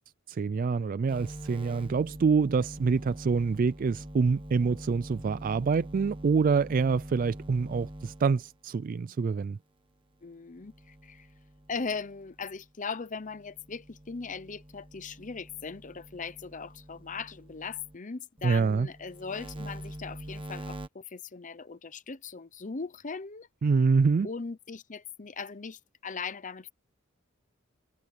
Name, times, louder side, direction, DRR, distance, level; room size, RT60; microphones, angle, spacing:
voice 1, 0.3-9.6 18.4-18.9 23.6-24.3, right 5 dB, 40° right, 0.3 m, -26 dB
sound 1, 1.1-8.6 10.5-12.7 13.2-18.0 18.4-20.9, right 1 dB, 25° right, 1.3 m, -45 dB
voice 2, 10.2-11.3 11.7-23.5 24.2-26.7, left 5 dB, 40° left, 0.8 m, -39 dB
head